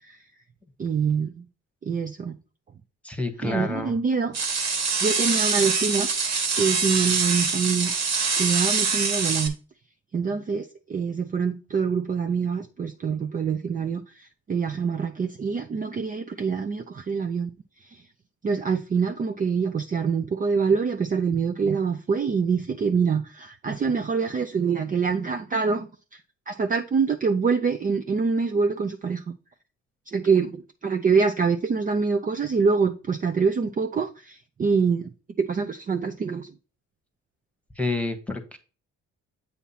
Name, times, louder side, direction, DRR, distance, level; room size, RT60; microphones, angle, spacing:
voice 1, 0.8-1.4 1.8-2.4 3.4-4.4 5.0-6.1 6.6-9.5 10.1-17.5 17.8-18.0 18.4-26.2 26.5-29.2 30.1-35.1 35.4-36.5, right 5 dB, 30° right, 0.5 m, -25 dB
voice 2, 3.0-3.9 37.8-38.6, left 3 dB, 5° left, 1.2 m, -29 dB
sound 1, 4.3-9.5, right 5 dB, 65° right, 1.6 m, -24 dB
8.3 x 2.8 x 5.6 m
cardioid pair, 90°, 30 cm